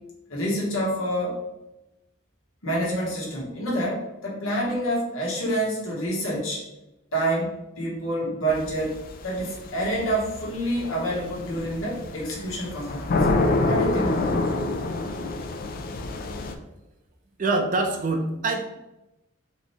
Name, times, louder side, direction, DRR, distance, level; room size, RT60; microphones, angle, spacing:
voice 1, 0.3-1.4 2.6-6.6 7.1-9.0 9.2-13.3 13.6-14.3, right 1 dB, 85° left, -5 dB, 1.5 m, -27 dB
sound 1, 8.5-16.5, left 2 dB, 45° left, 0.4 m, -27 dB
voice 2, 17.4-18.6, right 2 dB, 40° right, 4 dB, 0.5 m, -24 dB
4.2 x 3.0 x 3.2 m, 0.96 s
head